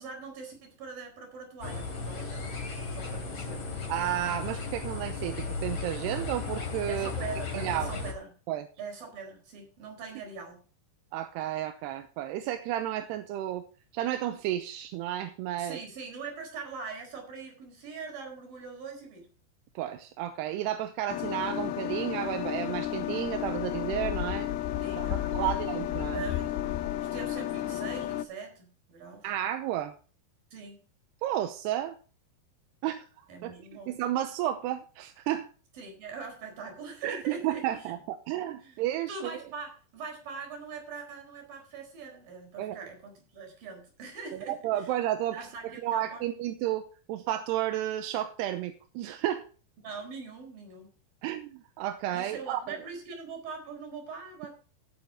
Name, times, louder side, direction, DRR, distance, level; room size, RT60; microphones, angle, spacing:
voice 1, 0.0-3.6 6.9-8.3 8.8-10.6 15.6-19.3 24.8-25.7 26.1-26.6 27.1-29.3 30.5-30.8 33.3-33.9 35.8-37.7 38.6-38.8 39.1-44.9 45.3-46.2 49.8-50.9 52.1-54.5, right 5 dB, 55° right, 3 dB, 6.0 m, -42 dB
sound 1, 1.6-8.1, left 4 dB, 40° left, 3.8 m, -35 dB
voice 2, 3.9-7.1 7.5-7.9 8.5-8.7 11.1-13.6 13.9-15.8 19.8-24.5 25.0-26.2 29.2-29.9 31.2-32.0 32.8-33.0 33.4-33.5 33.9-35.5 37.0-39.4 42.6-42.8 44.3-45.4 45.6-49.5 51.2-52.8, right 12 dB, 80° right, 9 dB, 2.8 m, -32 dB
sound 2, 21.1-28.3, left 13 dB, 80° left, 2.3 m, -32 dB
16.5 x 8.5 x 3.6 m, 0.38 s
omnidirectional pair, 4.9 m